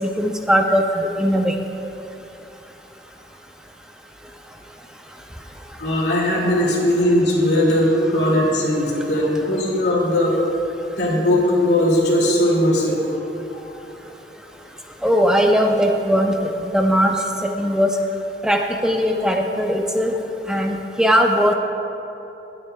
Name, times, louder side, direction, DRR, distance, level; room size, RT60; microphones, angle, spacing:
voice 1, 0.0-1.6 15.0-17.2 17.4-17.9 18.4-20.1 20.5-21.5, equal, 5° right, 2 dB, 0.5 m, -19 dB
voice 2, 5.8-10.3 11.0-13.2 13.5-13.7, left 1 dB, 75° left, -3 dB, 2.2 m, -19 dB
21.5 x 8.8 x 2.2 m, 3.0 s
head